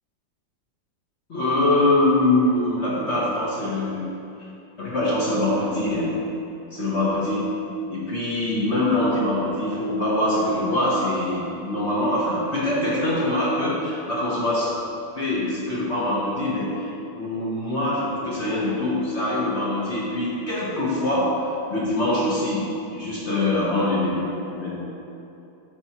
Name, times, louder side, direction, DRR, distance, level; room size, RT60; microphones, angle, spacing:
voice 1, 1.3-4.0 4.8-6.1 6.7-7.5 7.9-14.7 15.1-16.7 17.1-21.4 21.7-22.6 22.9-24.2 24.5-24.8, left 1 dB, 40° left, -7 dB, 1.2 m, -23 dB
8.9 x 5.2 x 3.0 m, 2.8 s
omnidirectional pair, 2.1 m